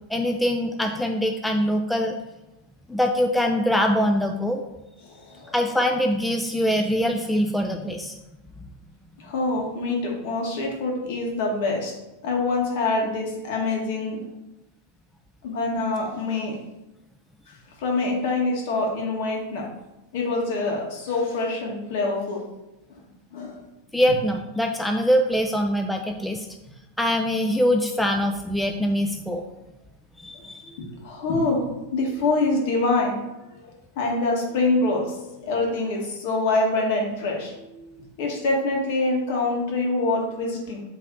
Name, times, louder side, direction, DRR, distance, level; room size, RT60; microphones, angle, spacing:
voice 1, 0.1-2.2 2.9-4.6 5.5-8.2 23.9-26.5 27.0-29.4 30.2-30.7, equal, 5° left, 3 dB, 0.3 m, -23 dB
voice 2, 5.0-5.5 9.2-11.9 12.2-14.3 15.4-16.6 17.8-19.7 20.1-22.4 23.3-23.6 30.7-33.2 34.0-40.8, left 2 dB, 55° left, 0 dB, 1.7 m, -25 dB
7.4 x 3.4 x 3.9 m, 0.96 s
supercardioid pair, 155°, 0 cm